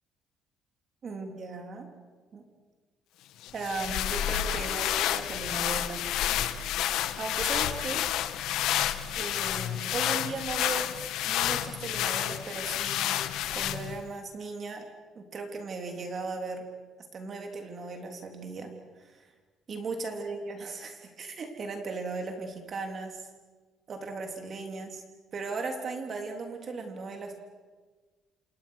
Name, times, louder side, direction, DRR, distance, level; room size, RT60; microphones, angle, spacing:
voice 1, 1.0-1.9 2.3-2.4 3.5-6.0 7.2-8.1 9.2-10.9 11.2-13.2 13.5-14.8 15.2-16.6 17.1-18.7 19.1-19.2 19.7-23.3 23.9-25.0 25.3-27.4, right 3 dB, 35° right, 4 dB, 3.4 m, -37 dB
sound 1, 3.4-14.1, left 12 dB, 80° left, 1.4 m, -30 dB
28.5 x 27.0 x 6.5 m, 1.4 s
cardioid pair, 170°, 0 cm